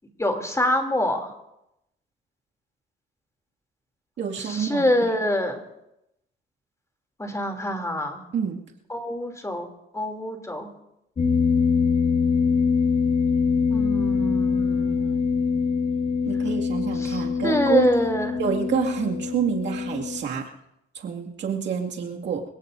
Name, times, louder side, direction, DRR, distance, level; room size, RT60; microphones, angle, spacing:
voice 1, 0.2-1.3 4.4-5.5 7.2-8.2 8.9-9.7 9.9-10.7 13.7-15.6 17.0-18.4, left 1 dB, 15° left, 4 dB, 3.0 m, -25 dB
voice 2, 4.2-5.1 8.3-8.6 16.3-17.9 18.4-20.5 20.9-22.4, right 7 dB, 65° right, 0 dB, 2.2 m, -27 dB
sound 1, 11.2-20.2, left 5 dB, 35° left, 2.4 m, -24 dB
26.5 x 17.0 x 2.7 m, 0.85 s
cardioid pair, 90°, 20 cm